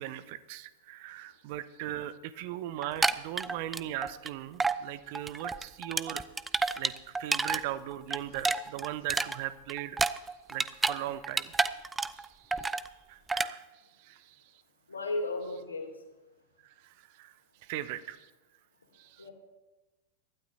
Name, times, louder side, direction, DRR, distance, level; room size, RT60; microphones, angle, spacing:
voice 1, 0.0-6.2 6.8-10.0 10.5-11.5 12.1-12.7 13.1-13.6 14.0-14.4 16.6-17.3 17.6-18.3 18.9-19.2, right 13 dB, 50° right, 15 dB, 0.7 m, -39 dB
sound 1, 2.8-4.3 4.6-4.8 5.1-7.6 7.9-11.0 11.2-12.3 12.5-12.9 13.3-13.5, right 3 dB, 10° right, 0.5 m, -30 dB
voice 2, 14.9-15.9 19.2-19.3, left 2 dB, 75° left, 2 dB, 2.8 m, -34 dB
24.0 x 12.0 x 2.8 m, 1.1 s
figure-of-eight pair, 90°, 0 cm